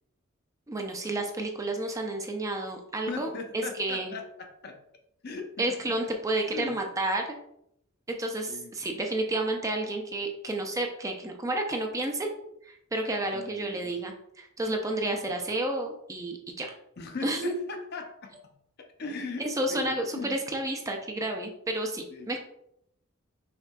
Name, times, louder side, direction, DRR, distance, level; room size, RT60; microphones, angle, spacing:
voice 1, 0.7-4.1 5.6-7.4 8.1-12.3 12.7-16.7 17.2-17.5 19.4-22.4, right 1 dB, 15° right, 3 dB, 0.4 m, -31 dB
voice 2, 3.1-4.8 5.2-5.6 6.5-6.8 8.5-8.8 13.0-13.9 14.9-15.4 17.0-20.4 22.1-22.4, left 4 dB, 50° left, 4 dB, 0.6 m, -40 dB
5.7 x 3.7 x 2.3 m, 0.76 s
head